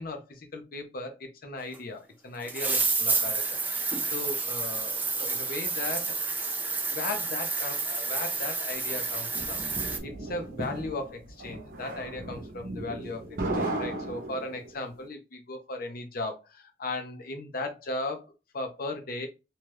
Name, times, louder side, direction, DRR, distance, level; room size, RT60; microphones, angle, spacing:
voice 1, 0.0-3.6 4.1-6.2 6.9-9.6 10.0-13.2 13.6-18.3 18.5-19.3, left 2 dB, 55° left, 0.7 m, -37 dB
sound 1, 1.7-1.8 2.5-10.0, right 4 dB, 10° right, 0.3 m, -30 dB
sound 2, 8.9-14.8, right 2 dB, 55° right, 0.7 m, -36 dB
2.8 x 2.3 x 3.2 m
head